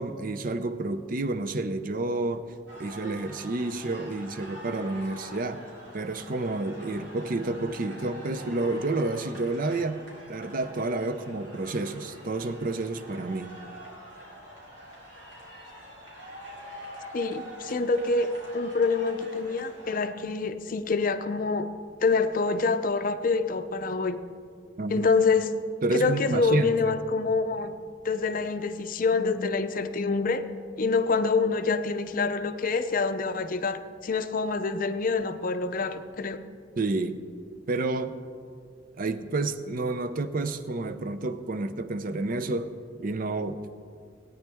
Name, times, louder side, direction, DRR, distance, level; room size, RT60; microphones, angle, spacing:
voice 1, 0.0-2.4 2.8-5.6 5.9-10.0 10.3-13.6 24.8-25.1 25.8-27.0 36.8-37.2 37.7-38.1 39.0-42.7 43.0-43.6, right 2 dB, 45° right, 11 dB, 0.5 m, -30 dB
sound 1, 2.7-20.0, equal, 75° right, 3.3 m, -45 dB
voice 2, 17.1-21.7 22.0-24.2 24.9-25.5 25.9-27.7 28.0-30.4 30.8-36.4, left 4 dB, 45° left, 10 dB, 0.5 m, -26 dB
17.5 x 9.4 x 3.5 m, 2.2 s
head